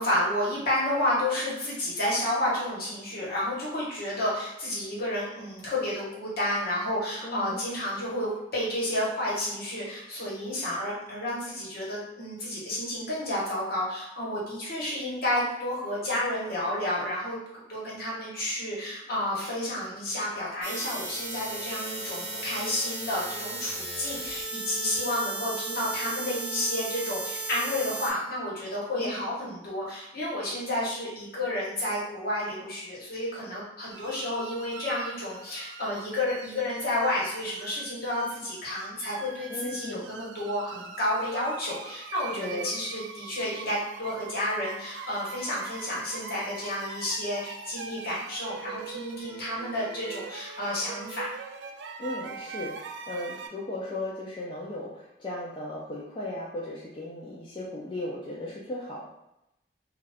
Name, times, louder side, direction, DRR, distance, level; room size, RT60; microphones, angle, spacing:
voice 1, 0.0-17.4 17.7-51.3, left 1 dB, 60° left, -6 dB, 1.2 m, -31 dB
voice 2, 7.2-7.6 29.0-29.2 39.5-40.1 42.3-42.7 52.0-59.1, left 1 dB, 30° left, -6 dB, 0.4 m, -36 dB
sound 1, 20.6-28.1, right 2 dB, 35° right, 1.1 m, -35 dB
sound 2, 33.9-53.5, right 5 dB, 70° right, 0.3 m, -42 dB
2.5 x 2.3 x 3.4 m, 0.88 s
head